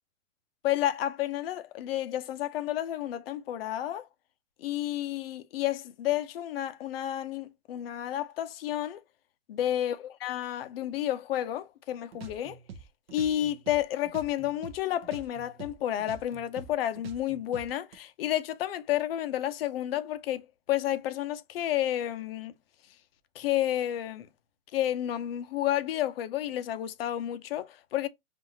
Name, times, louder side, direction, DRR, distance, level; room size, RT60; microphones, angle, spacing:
voice 1, 0.6-4.1 4.6-9.0 9.5-10.0 10.2-12.6 13.1-22.5 23.4-24.3 24.7-28.1, left 12 dB, 45° left, 0.6 m, -31 dB
sound 1, 12.1-14.8 15.0-18.0, right 6 dB, 45° right, 0.8 m, -46 dB
5.4 x 2.5 x 2.7 m
hypercardioid pair, 160°, 42 cm